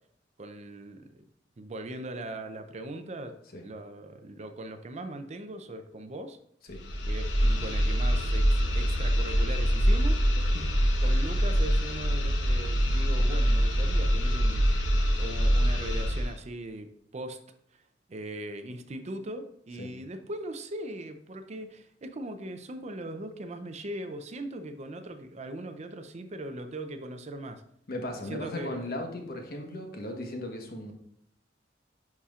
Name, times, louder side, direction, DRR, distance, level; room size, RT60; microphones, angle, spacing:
voice 1, 0.4-1.3 1.6-3.3 3.6-6.4 7.1-10.2 11.0-14.7 15.2-17.4 17.7-17.8 18.1-27.6 28.2-28.9, right 1 dB, 40° right, 8 dB, 0.5 m, -39 dB
sound 1, 6.7-16.4, equal, 85° left, 1.0 m, -25 dB
voice 2, 27.9-30.9, left 1 dB, 55° left, 3 dB, 1.1 m, -37 dB
10.5 x 4.3 x 2.4 m, 0.71 s
head